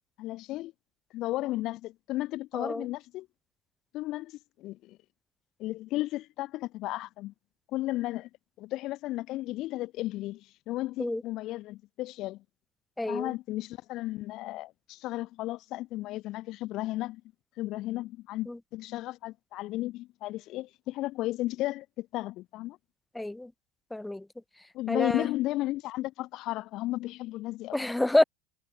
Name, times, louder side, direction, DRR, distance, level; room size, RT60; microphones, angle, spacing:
voice 1, 0.2-0.7 1.1-3.3 3.9-5.0 5.6-7.3 7.7-8.3 8.6-12.4 13.1-17.2 17.6-22.8 24.7-27.8, left 17 dB, 55° left, 1.3 m, -34 dB
voice 2, 2.5-2.8 11.0-11.2 13.0-13.3 18.5-18.6 23.1-23.5 23.9-24.2 24.9-25.3 27.7-28.2, left 1 dB, 5° left, 2.9 m, -27 dB
hypercardioid pair, 75°, 0 cm